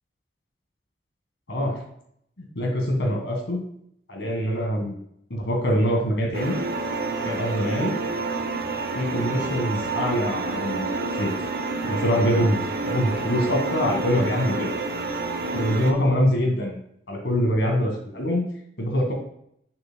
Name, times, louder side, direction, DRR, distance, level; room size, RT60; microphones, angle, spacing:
voice 1, 1.5-1.8 2.4-3.6 4.1-5.0 5.3-6.6 7.2-7.9 9.0-11.4 11.8-14.7 15.5-16.8 17.1-18.4 18.8-19.1, equal, 80° left, 1 dB, 1.7 m, -24 dB
sound 1, 6.3-15.9, right 3 dB, 55° right, 0.7 m, -28 dB
7.1 x 6.4 x 2.3 m, 0.71 s
head